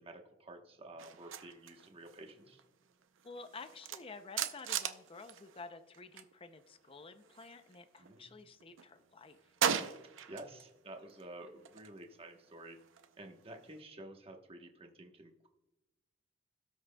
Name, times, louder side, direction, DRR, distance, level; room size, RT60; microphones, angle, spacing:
voice 1, 0.0-2.6 8.0-8.2 10.3-12.8 13.2-15.5, right 1 dB, 30° right, 3 dB, 1.1 m, -51 dB
sound 1, 1.0-6.3 6.6-8.2 8.6-10.7 11.0-13.8, right 8 dB, 85° right, 0.6 m, -41 dB
voice 2, 3.2-9.4, left 4 dB, 30° left, 9 dB, 0.5 m, -51 dB
17.5 x 6.1 x 2.2 m, 1.0 s
head